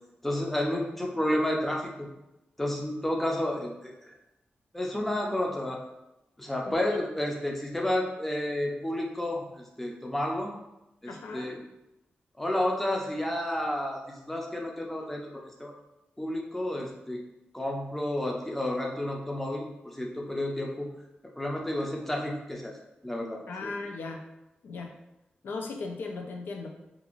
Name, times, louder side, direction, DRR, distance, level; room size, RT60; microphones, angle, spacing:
voice 1, 0.2-2.1 2.6-4.1 4.7-5.8 6.4-10.5 11.0-11.6 12.4-15.7 16.2-17.2 17.5-20.9 21.4-22.8 23.0-23.7, left 1 dB, 5° left, -1 dB, 0.4 m, -31 dB
voice 2, 11.1-11.5 23.5-24.2 24.6-24.9 25.4-26.7, left 3 dB, 90° left, 2 dB, 0.4 m, -37 dB
2.5 x 2.4 x 3.0 m, 0.92 s
wide cardioid pair, 160°, 3 cm